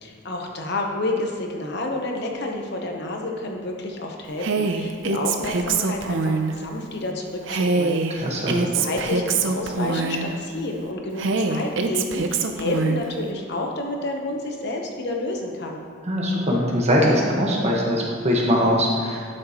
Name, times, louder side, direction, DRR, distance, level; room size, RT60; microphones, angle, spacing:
voice 1, 0.0-8.0 8.5-15.8, left 2 dB, 60° left, 1 dB, 1.0 m, -29 dB
Female speech woman speaking, 4.4-6.5 7.5-10.4 11.2-13.1, right 4 dB, 65° right, 0.6 m, -24 dB
voice 2, 8.2-8.5 16.0-19.3, equal, 35° right, -2 dB, 1.4 m, -21 dB
11.5 x 6.5 x 3.0 m, 2.3 s
head